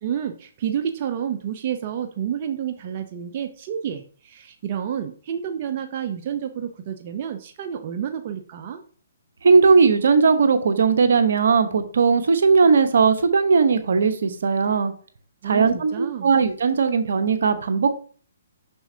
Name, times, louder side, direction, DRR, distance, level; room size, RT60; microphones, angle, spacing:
voice 1, 0.0-8.8 15.4-16.3, right 9 dB, 40° right, 7 dB, 0.7 m, -29 dB
voice 2, 9.4-14.9 15.4-18.0, right 5 dB, 70° right, 8 dB, 1.0 m, -18 dB
6.7 x 6.0 x 2.8 m, 0.42 s
hypercardioid pair, 145°, 0 cm